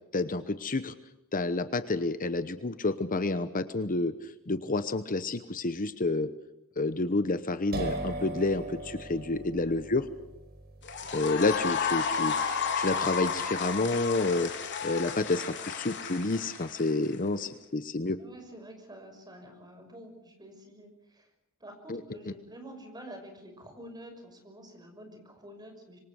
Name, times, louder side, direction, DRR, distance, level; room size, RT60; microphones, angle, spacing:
voice 1, 0.1-0.9 1.3-4.1 4.5-6.3 6.8-10.0 11.1-14.5 14.8-18.2 21.9-22.0, left 2 dB, 40° left, 11 dB, 1.0 m, -29 dB
sound 1, 7.7-15.3, right 1 dB, 50° right, 4.9 m, -41 dB
sound 2, 10.8-17.2, left 6 dB, 55° left, 3.7 m, -32 dB
voice 2, 18.2-21.3 21.6-26.0, right 1 dB, 20° right, 5 dB, 6.1 m, -48 dB
26.5 x 24.0 x 6.5 m, 0.89 s
head